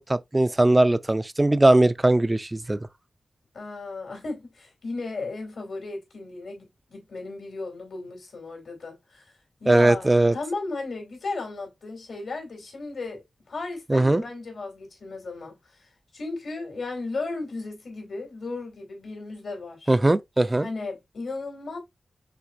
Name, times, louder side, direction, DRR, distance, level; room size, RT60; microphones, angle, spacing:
voice 1, 0.1-2.8 9.7-10.3 13.9-14.2 19.9-20.7, right 2 dB, 20° right, 0.4 m, -20 dB
voice 2, 3.5-9.3 9.6-20.0 20.6-21.8, left 3 dB, 75° left, 2.7 m, -35 dB
5.9 x 3.2 x 2.5 m
wide cardioid pair, 80°, 0 cm